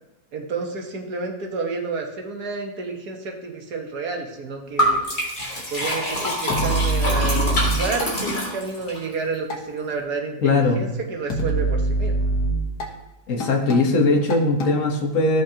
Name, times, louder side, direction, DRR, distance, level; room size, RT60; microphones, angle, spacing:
voice 1, 0.3-5.0 5.7-12.3, right 4 dB, 75° right, 1 dB, 1.8 m, -30 dB
Liquid, 4.8-9.0, equal, 30° left, 2.5 m, -25 dB
sound 1, 6.5-8.1 9.5-9.6 11.3-12.9 13.4-13.9 14.3-14.8, right 2 dB, 85° left, 2.0 m, -23 dB
voice 2, 10.4-10.8 13.3-15.4, left 3 dB, 55° left, 1 dB, 1.6 m, -20 dB
14.5 x 6.3 x 2.9 m, 1.0 s
omnidirectional pair, 1.7 m